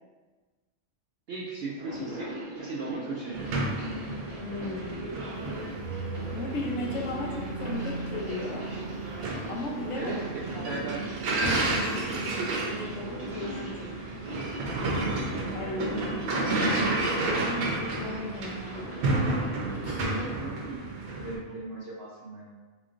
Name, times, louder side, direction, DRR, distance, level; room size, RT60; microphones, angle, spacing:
voice 1, 1.3-2.3 2.6-3.6 10.0-11.0 20.2-20.8 21.1-22.5, right 3 dB, 65° right, -5 dB, 0.6 m, -37 dB
sound 1, 1.7-20.3, equal, 30° right, 0.8 m, -42 dB
sound 2, 3.3-21.4, right 2 dB, 85° right, 1.1 m, -31 dB
voice 2, 4.4-5.3 6.3-8.7 9.5-10.2 10.5-10.8 11.4-13.9 15.5-16.1 16.8-18.9 19.7-20.3, left 2 dB, 65° left, -2 dB, 0.9 m, -37 dB
sound 3, 5.3-13.0, right 3 dB, 40° left, 0.6 m, -41 dB
4.0 x 3.1 x 2.5 m, 1.3 s
omnidirectional pair, 1.5 m